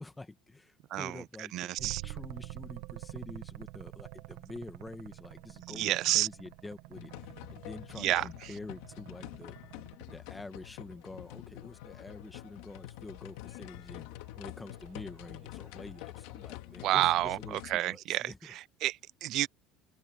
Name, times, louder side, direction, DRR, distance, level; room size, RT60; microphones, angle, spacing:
voice 1, 0.0-9.6 10.1-14.1 14.4-18.5, left 2 dB, 10° left, 1.8 m, -47 dB
voice 2, 1.5-2.0 5.8-6.3 8.0-8.3 16.8-19.5, right 15 dB, 55° right, 0.3 m, -30 dB
sound 1, 1.8-10.3 12.6-17.1, right 19 dB, 85° right, 1.4 m, -48 dB
sound 2, 6.9-17.8, left 16 dB, 90° left, 2.3 m, -46 dB
cardioid pair, 145°, 0 cm